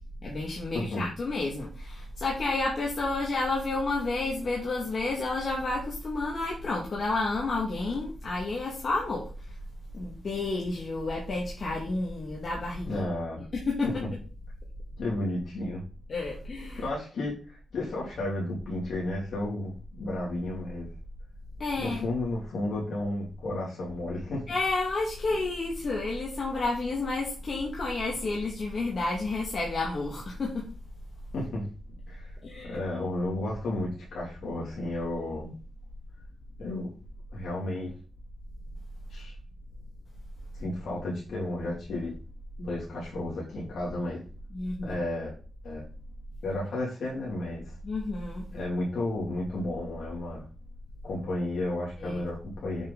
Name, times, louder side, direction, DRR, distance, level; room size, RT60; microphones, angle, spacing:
voice 1, 0.2-9.2 9.9-13.0 13.5-13.9 16.1-16.8 21.6-22.1 24.5-30.7 32.4-32.8 44.5-44.9 47.8-48.4 52.0-52.3, left 3 dB, 55° left, -3 dB, 2.3 m, -30 dB
voice 2, 0.7-1.1 12.9-13.4 13.8-14.1 15.0-15.8 16.7-20.9 21.8-24.4 31.3-31.6 32.1-32.3 32.6-35.5 36.6-36.9 37.3-37.9 39.1-39.3 40.6-42.1 42.6-44.2 44.8-45.3 45.6-45.8 46.4-47.7 48.5-50.5 51.0-52.9, left 1 dB, 80° left, -5 dB, 3.0 m, -32 dB
7.3 x 5.9 x 4.1 m, 0.37 s
cardioid pair, 70°, 0 cm